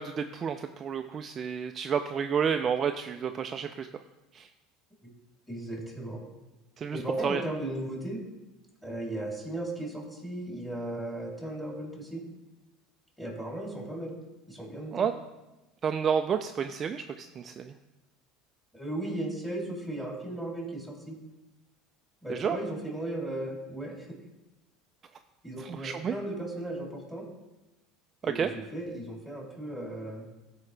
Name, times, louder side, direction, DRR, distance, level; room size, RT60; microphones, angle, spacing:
voice 1, 0.0-3.9 4.3-4.5 6.8-7.4 14.9-15.1 15.8-17.7 22.3-22.6 25.6-26.2 28.2-28.5, right 7 dB, 35° right, 7 dB, 0.4 m, -30 dB
voice 2, 5.5-6.2 6.9-8.2 8.8-12.2 13.2-14.1 14.5-14.9 18.7-21.1 22.2-24.1 25.4-27.3 28.2-30.2, right 1 dB, ahead, -2 dB, 2.9 m, -36 dB
13.5 x 4.8 x 3.2 m, 1.0 s
supercardioid pair, 115°, 0 cm